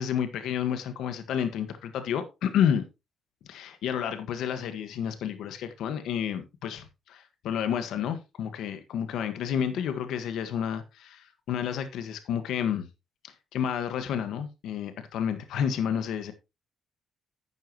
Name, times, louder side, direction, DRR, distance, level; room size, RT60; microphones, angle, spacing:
voice 1, 0.0-2.8 3.5-12.9 13.5-16.3, left 8 dB, 80° left, 1.5 m, -30 dB
11.5 x 9.3 x 3.0 m
cardioid pair, 90°, 0 cm